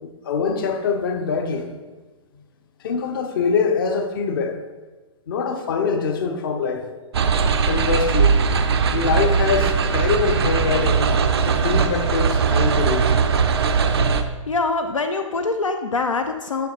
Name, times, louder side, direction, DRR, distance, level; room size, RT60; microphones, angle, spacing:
voice 1, 0.0-1.7 2.8-4.6 5.3-6.8 7.6-8.4 8.9-11.1 11.4-13.3, left 5 dB, 40° left, 6 dB, 0.8 m, -24 dB
sound 1, 7.1-14.2, right 5 dB, 50° right, 0.5 m, -19 dB
voice 2, 14.5-16.7, left 3 dB, 70° left, 6 dB, 0.6 m, -24 dB
8.3 x 6.2 x 3.0 m, 1.2 s
figure-of-eight pair, 120°, 17 cm